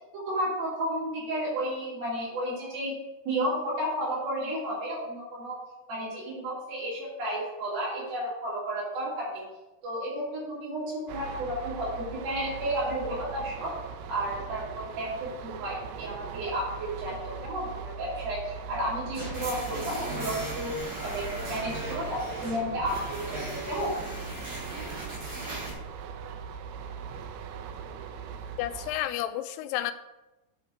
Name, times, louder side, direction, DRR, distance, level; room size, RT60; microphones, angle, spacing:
voice 1, 0.1-2.9 3.3-5.6 5.9-9.4 9.8-13.7 14.1-20.7 21.0-23.9, right 1 dB, 65° right, -6 dB, 4.9 m, -32 dB
sound 1, 11.1-29.0, right 6 dB, 80° right, 2.6 m, -40 dB
sound 2, 19.1-25.7, right 1 dB, 30° right, 2.6 m, -38 dB
voice 2, 28.6-29.9, left 13 dB, 85° left, 11 dB, 2.6 m, -31 dB
9.4 x 5.7 x 4.3 m, 1.0 s
omnidirectional pair, 4.6 m